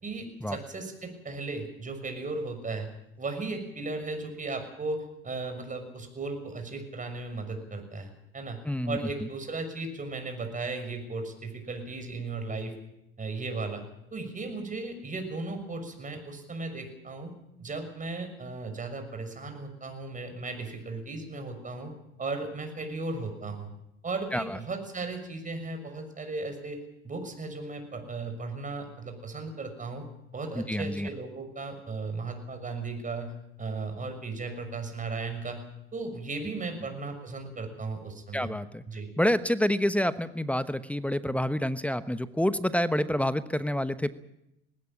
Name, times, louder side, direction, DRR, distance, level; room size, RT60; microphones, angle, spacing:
voice 1, 0.0-2.9 3.2-8.6 8.9-12.8 13.2-13.8 14.1-17.3 17.6-21.9 22.2-23.7 24.0-30.0 30.3-33.3 33.6-35.6 35.9-38.5 38.9-39.1, right 3 dB, 25° right, 7 dB, 6.4 m, -36 dB
voice 2, 8.6-9.0 24.3-24.6 30.6-31.1 38.3-38.8 39.2-44.1, equal, 5° left, 12 dB, 1.1 m, -28 dB
19.5 x 17.0 x 8.8 m, 0.84 s
hypercardioid pair, 85°, 32 cm